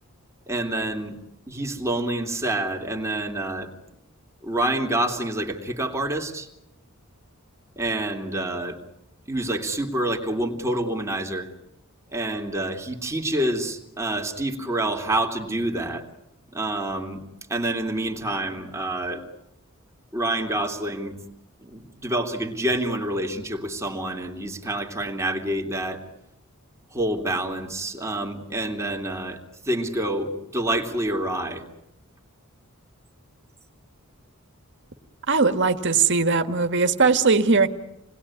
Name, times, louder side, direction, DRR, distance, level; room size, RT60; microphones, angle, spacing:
voice 1, 0.5-1.2 1.5-3.7 4.4-6.5 7.8-8.8 9.3-11.5 12.1-16.0 16.5-17.2 17.5-19.2 20.1-21.2 21.6-26.0 26.9-29.4 29.6-31.6, right 1 dB, 15° right, 2 dB, 3.1 m, -27 dB
voice 2, 35.3-37.7, right 4 dB, 60° right, 8 dB, 1.8 m, -19 dB
29.0 x 20.5 x 9.9 m, 0.86 s
head